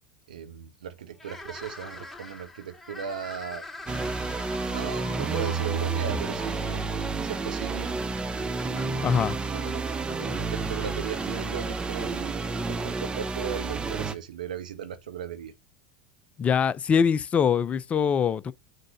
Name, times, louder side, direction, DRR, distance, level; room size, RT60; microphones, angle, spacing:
voice 1, 0.3-3.7 4.2-6.8 7.2-7.9 8.7-12.4 12.7-15.5, right 8 dB, 75° right, 1.2 m, -37 dB
sound 1, 1.1-12.4, left 2 dB, 5° left, 3.1 m, -44 dB
sound 2, 3.9-14.1, right 4 dB, 20° right, 1.0 m, -30 dB
voice 2, 9.0-9.4 16.4-18.5, left 7 dB, 30° left, 0.7 m, -23 dB
6.6 x 3.7 x 6.0 m
hypercardioid pair, 80°, 4 cm